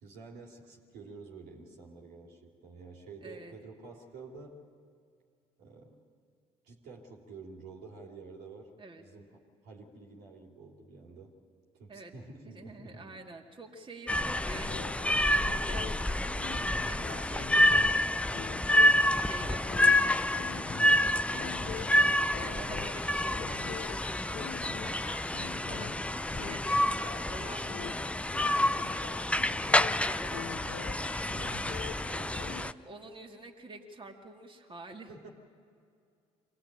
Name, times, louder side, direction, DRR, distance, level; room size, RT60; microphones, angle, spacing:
voice 1, 0.0-4.6 5.6-6.0 6.6-8.7 9.0-9.3 9.6-11.3 11.7-13.2 31.3-31.7 32.1-32.4 35.1-35.3, right 4 dB, 80° right, 0 dB, 3.1 m, -49 dB
voice 2, 3.2-3.5 8.8-9.0 11.9-12.1 12.4-17.8 19.1-29.2 29.4-30.5 30.9-31.6 32.9-35.1, right 2 dB, 30° right, 1 dB, 2.4 m, -48 dB
sound 1, 14.1-32.7, left 1 dB, 5° left, 0.6 m, -28 dB
sound 2, 14.5-32.6, left 8 dB, 75° left, 1.4 m, -44 dB
24.5 x 17.5 x 8.9 m, 2.4 s
hypercardioid pair, 60°, 16 cm